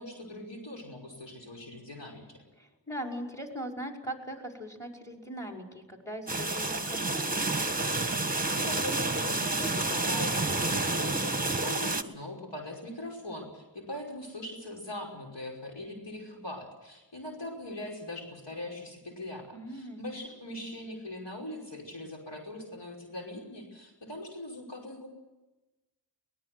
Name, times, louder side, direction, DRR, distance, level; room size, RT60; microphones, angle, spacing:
voice 1, 0.0-2.4 8.1-25.1, left 1 dB, 70° left, 1 dB, 5.6 m, -41 dB
voice 2, 2.6-7.3 19.5-20.0, equal, 5° left, 2 dB, 5.5 m, -40 dB
sound 1, 6.3-12.0, right 2 dB, 20° right, 1.5 m, -29 dB
22.5 x 19.5 x 7.8 m, 1.1 s
wide cardioid pair, 65°, 44 cm